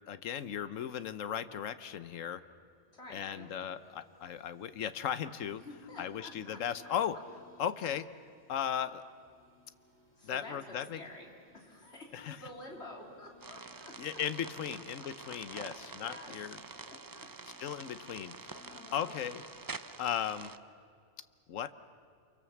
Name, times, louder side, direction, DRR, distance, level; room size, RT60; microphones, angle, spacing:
voice 1, 0.1-2.4 3.1-5.6 6.0-7.2 7.6-8.1 8.5-9.0 10.2-11.0 12.1-12.4 14.0-16.6 17.6-18.6 18.9-19.4 20.0-20.5 21.5-21.7, left 9 dB, 80° left, 13 dB, 1.2 m, -36 dB
sound 1, 2.6-19.4, left 3 dB, 10° left, 2.8 m, -64 dB
voice 2, 2.9-3.5 5.6-6.6 10.2-14.8 15.5-16.3 16.8-17.3 18.1-19.2, left 1 dB, 55° left, 0 dB, 3.6 m, -50 dB
sound 2, 13.4-20.6, right 4 dB, 35° right, 0.3 m, -47 dB
28.0 x 23.5 x 7.2 m, 2.3 s
omnidirectional pair, 1.3 m